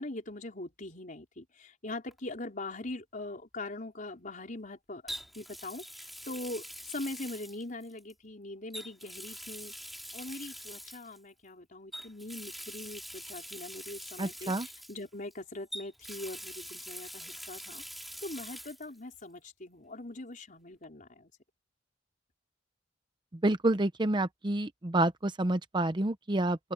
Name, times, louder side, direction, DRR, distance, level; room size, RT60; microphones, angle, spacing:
voice 1, 0.0-9.7 10.1-17.8 18.2-21.3, left 2 dB, 45° left, 4.7 m, -42 dB
Water tap faucet, 2.1-2.3 5.1-8.1 8.7-11.2 11.9-15.3 15.7-18.9 19.2-19.3 20.8-20.9, equal, ahead, 5.8 m, -44 dB
voice 2, 14.2-14.7 23.4-26.6, right 2 dB, 25° right, 0.8 m, -28 dB
open air
head